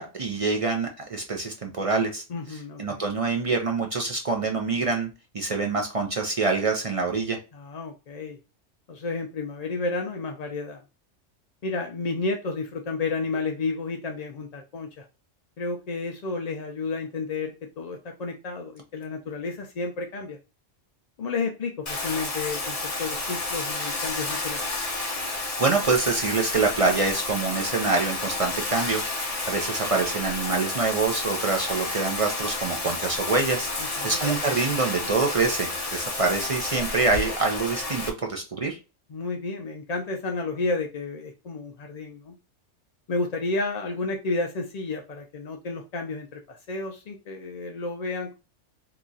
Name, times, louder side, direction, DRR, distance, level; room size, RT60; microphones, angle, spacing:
voice 1, 0.0-2.2 2.8-5.1 5.3-7.4 25.3-38.0 38.3-38.8, right 3 dB, 50° right, 2 dB, 0.4 m, -26 dB
voice 2, 2.3-3.0 7.5-8.4 8.9-10.8 11.6-15.0 15.6-20.4 21.2-24.7 33.8-34.2 39.1-42.4 43.1-48.3, left 3 dB, 65° left, 3 dB, 0.4 m, -31 dB
Bathtub (filling or washing), 21.9-38.1, left 2 dB, 35° left, 0.7 m, -31 dB
2.9 x 2.4 x 3.8 m, 0.30 s
omnidirectional pair, 1.2 m